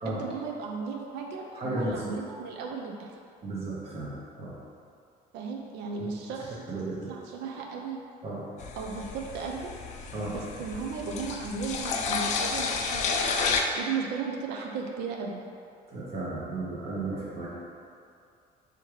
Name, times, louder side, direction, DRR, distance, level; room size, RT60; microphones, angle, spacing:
voice 1, 0.0-3.1 5.3-6.5 7.1-8.0 8.8-9.7 10.3-15.4, right 5 dB, 80° right, 1 dB, 0.5 m, -35 dB
voice 2, 1.5-2.1 3.4-4.6 6.0-6.1 6.4-7.1 8.2-8.5 10.1-10.3 15.9-17.5, right 2 dB, 35° right, -7 dB, 0.8 m, -34 dB
sound 1, 8.6-13.6, left 5 dB, 45° left, 0.4 m, -31 dB
4.5 x 3.5 x 3.2 m, 2.5 s
cardioid pair, 155°, 17 cm